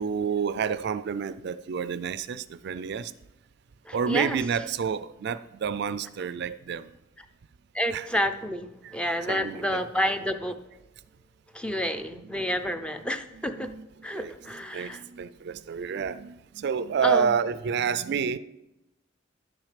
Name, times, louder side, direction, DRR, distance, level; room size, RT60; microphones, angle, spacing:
voice 1, 0.0-3.1 3.9-6.9 7.9-8.2 9.0-9.9 12.1-12.7 13.0-18.4, right 6 dB, 55° right, 14 dB, 0.4 m, -30 dB
voice 2, 3.8-4.4 7.7-10.6 11.5-13.7 14.0-15.0 17.0-17.3, equal, 5° left, 8 dB, 0.5 m, -29 dB
10.5 x 6.3 x 5.0 m, 0.91 s
head